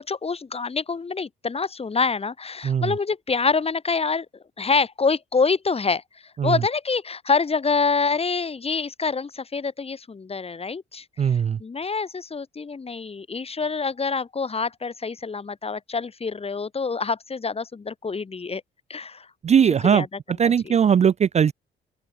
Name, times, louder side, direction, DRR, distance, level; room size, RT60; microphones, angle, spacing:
voice 1, 0.0-4.3 4.6-6.0 6.4-18.6 18.9-19.3 19.8-20.1 20.4-20.8, left 4 dB, 30° left, 2.3 m, -26 dB
voice 2, 11.2-11.6 19.4-20.1 20.4-21.5, right 7 dB, 35° right, 0.4 m, -19 dB
open air
cardioid pair, 90°, 20 cm